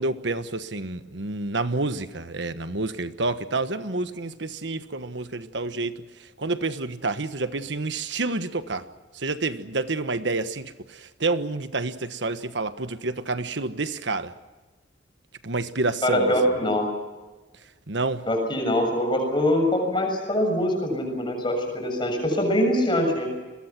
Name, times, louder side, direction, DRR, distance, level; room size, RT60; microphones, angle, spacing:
voice 1, 0.0-8.9 9.1-14.3 15.4-16.3 17.9-18.2, right 3 dB, 75° right, 1.4 m, -29 dB
voice 2, 16.0-16.9 18.3-23.3, left 1 dB, 25° left, 7.0 m, -23 dB
30.0 x 22.0 x 6.1 m
head